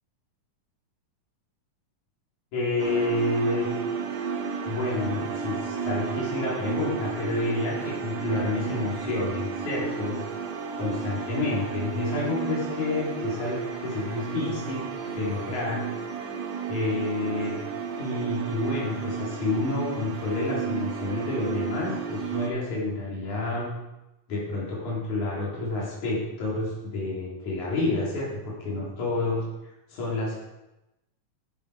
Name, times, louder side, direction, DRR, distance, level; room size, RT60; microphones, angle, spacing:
voice 1, 2.5-3.7 4.7-10.2 10.7-15.8 16.7-17.6 18.0-23.7 24.3-29.4 29.9-30.4, left 2 dB, 70° left, -6 dB, 4.9 m, -29 dB
sound 1, 2.8-22.5, right 6 dB, 80° right, 0.9 m, -33 dB
11.5 x 10.0 x 4.9 m, 0.96 s
omnidirectional pair, 3.6 m